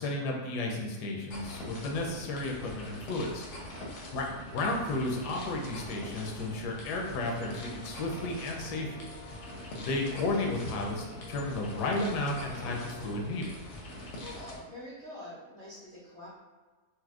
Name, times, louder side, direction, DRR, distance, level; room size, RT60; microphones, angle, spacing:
voice 1, 0.0-3.4 4.1-8.9 9.7-13.5, left 2 dB, 85° left, 0 dB, 1.2 m, -33 dB
sound 1, 1.3-14.6, left 1 dB, 65° left, 0.8 m, -43 dB
voice 2, 3.7-4.2 14.1-16.4, left 1 dB, 50° right, -9 dB, 0.9 m, -46 dB
sound 2, 6.7-13.3, left 1 dB, 40° left, 0.6 m, -53 dB
4.2 x 2.1 x 2.3 m, 1.3 s
omnidirectional pair, 1.7 m